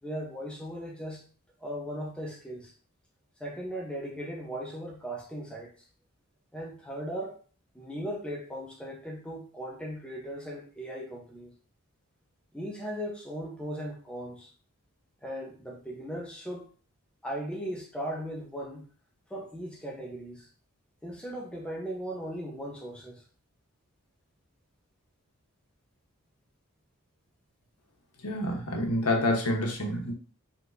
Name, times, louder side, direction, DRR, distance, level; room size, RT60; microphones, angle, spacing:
voice 1, 0.0-1.2 1.6-2.7 3.4-5.9 6.5-7.4 7.7-11.5 12.5-14.5 15.2-16.7 17.2-18.8 19.3-20.5 21.0-23.2 28.3-28.4 29.6-29.7, equal, 5° left, -2 dB, 1.0 m, -38 dB
voice 2, 28.2-30.1, left 1 dB, 90° left, 1 dB, 1.2 m, -28 dB
4.4 x 4.0 x 2.7 m, 0.39 s
head